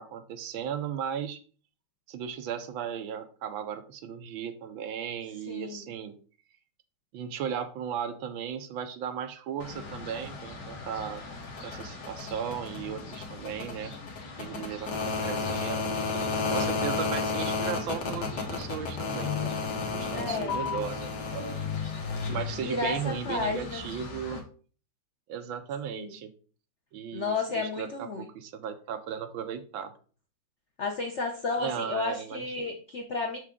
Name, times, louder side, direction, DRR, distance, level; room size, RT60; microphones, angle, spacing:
voice 1, 0.0-1.4 2.1-6.2 7.1-11.2 11.6-14.0 14.4-19.5 19.9-21.6 22.3-24.4 25.3-26.3 26.9-29.9 31.6-32.7, right 8 dB, 75° right, 9 dB, 1.4 m, -36 dB
voice 2, 5.5-5.9 20.1-20.5 22.6-23.8 24.3-24.4 26.0-26.1 27.1-28.3 30.8-33.4, left 4 dB, 80° left, 3 dB, 0.6 m, -32 dB
sound 1, 9.6-24.4, left 4 dB, 55° left, 1.8 m, -33 dB
6.7 x 4.9 x 3.6 m, 0.40 s
omnidirectional pair, 2.3 m